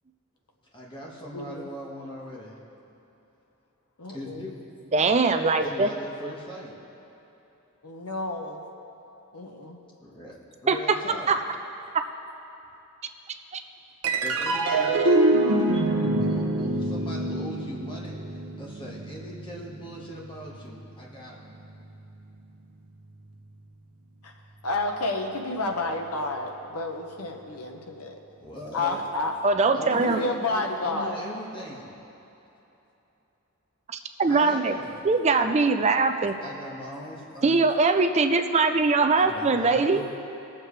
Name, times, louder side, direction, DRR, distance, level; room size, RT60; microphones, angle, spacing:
voice 1, 0.7-2.6 4.1-4.6 5.6-6.8 10.0-11.3 14.2-21.5 28.4-29.0 29.7-32.0 34.3-35.1 36.4-37.6 39.2-40.2, equal, 20° left, -4 dB, 1.7 m, -40 dB
voice 2, 1.3-1.7 4.0-4.5 7.8-8.6 9.3-9.8 24.2-24.3 24.6-28.2 28.7-29.3 29.9-31.2, left 2 dB, 90° left, 2 dB, 1.1 m, -30 dB
voice 3, 4.9-5.9 10.7-10.8 11.3-11.4 14.8-14.9 29.4-30.2 34.2-34.7 35.0-36.4 37.4-40.0, right 3 dB, 30° right, 7 dB, 0.4 m, -21 dB
sound 1, 14.0-20.7, right 2 dB, 90° right, 0.9 m, -25 dB
20.5 x 7.3 x 3.3 m, 3.0 s
head